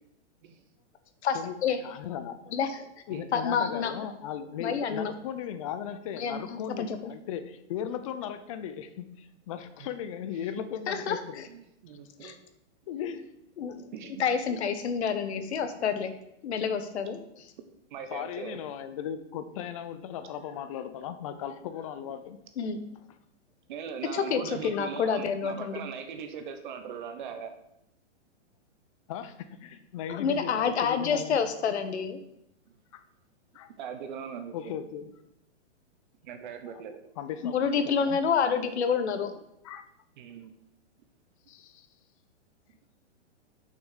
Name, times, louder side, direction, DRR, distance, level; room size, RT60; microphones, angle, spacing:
voice 1, 1.2-1.8 2.5-2.9 3.3-3.9 4.6-5.1 6.1-7.1 10.9-11.4 12.2-12.3 13.6-13.8 14.2-16.1 16.4-17.5 22.6-22.8 24.1-25.8 30.1-32.2 37.4-39.3, left 6 dB, 65° left, 9 dB, 1.3 m, -28 dB
voice 2, 1.8-2.4 3.1-11.4 12.9-13.3 18.1-22.4 29.1-31.4 32.9-33.0 33.5-33.7 34.5-35.1 37.2-37.5 37.8-38.2 39.6-39.8 41.5-41.9, left 9 dB, 30° left, 10 dB, 0.6 m, -37 dB
voice 3, 11.5-12.4 13.9-14.3 17.9-18.6 23.7-27.5 33.8-34.8 36.2-37.0 40.2-40.6, right 7 dB, 40° right, 7 dB, 1.0 m, -40 dB
6.9 x 6.4 x 6.6 m, 0.81 s
hypercardioid pair, 160°, 36 cm